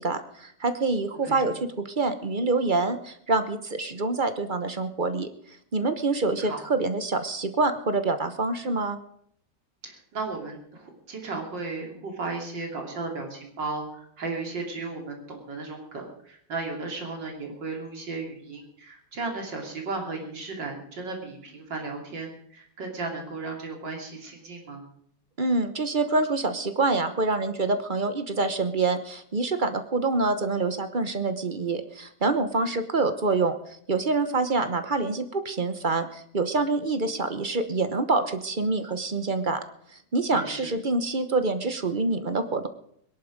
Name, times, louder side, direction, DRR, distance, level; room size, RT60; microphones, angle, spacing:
voice 1, 0.0-5.3 5.7-9.0 25.4-33.6 33.9-39.6 40.1-42.7, right 3 dB, 35° right, 10 dB, 0.9 m, -26 dB
voice 2, 9.8-24.9 32.6-32.7 40.3-40.7, right 3 dB, 85° right, 1 dB, 3.6 m, -35 dB
21.5 x 11.0 x 5.1 m, 0.67 s
omnidirectional pair, 1.9 m